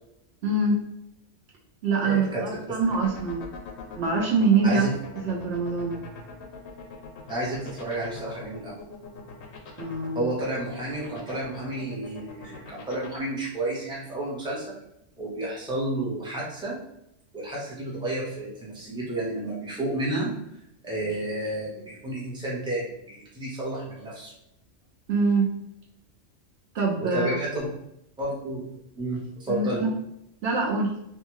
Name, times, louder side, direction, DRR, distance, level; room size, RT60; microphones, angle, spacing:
voice 1, 0.4-0.8 1.8-3.5 4.0-4.9 5.2-6.0 9.8-10.2 25.1-25.5 26.7-27.3 29.5-29.9 30.4-30.9, right 4 dB, 65° right, -3 dB, 0.8 m, -24 dB
voice 2, 2.0-2.8 4.6-4.9 7.3-8.8 10.1-14.7 15.2-16.8 17.3-20.3 20.8-24.3 27.0-27.7 28.2-28.6 29.0-29.8, right 1 dB, 5° right, -6 dB, 0.6 m, -31 dB
sound 1, 2.8-13.2, left 5 dB, 60° left, 0.7 m, -42 dB
2.6 x 2.3 x 3.0 m, 0.80 s
omnidirectional pair, 1.2 m